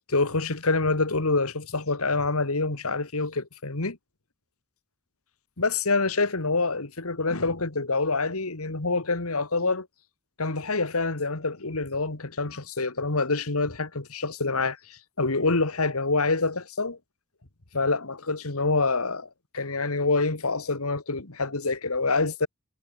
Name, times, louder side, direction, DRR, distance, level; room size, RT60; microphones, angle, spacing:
voice 1, 0.1-4.0 5.6-9.9 10.4-17.0 17.7-19.3 19.5-22.5, left 3 dB, 80° left, 2.2 m, -26 dB
head